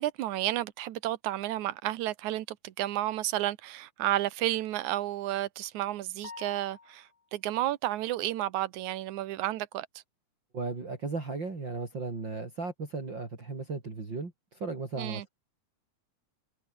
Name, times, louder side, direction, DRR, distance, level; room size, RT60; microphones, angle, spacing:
voice 1, 0.0-9.9 15.0-15.3, right 14 dB, 75° right, 2.5 m, -32 dB
sound 1, 6.2-7.3, left 5 dB, 65° left, 5.8 m, -47 dB
voice 2, 10.5-15.3, right 3 dB, 35° right, 4.7 m, -36 dB
omnidirectional pair, 3.5 m